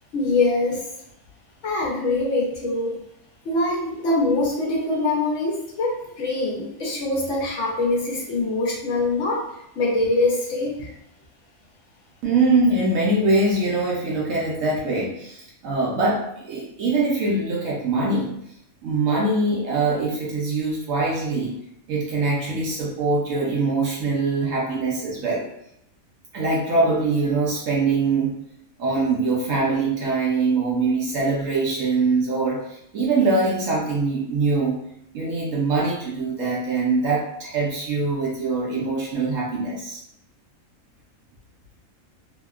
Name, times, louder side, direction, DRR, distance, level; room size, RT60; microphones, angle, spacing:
voice 1, 0.1-0.8 1.6-3.0 3.4-9.4 9.8-10.9, left 2 dB, 65° left, -3 dB, 0.8 m, -23 dB
voice 2, 12.2-18.3 18.8-21.5 21.9-25.5 26.3-28.4 28.8-34.8 35.1-40.0, right 3 dB, 70° right, -4 dB, 0.9 m, -23 dB
2.8 x 2.1 x 2.3 m, 0.77 s
omnidirectional pair, 1.5 m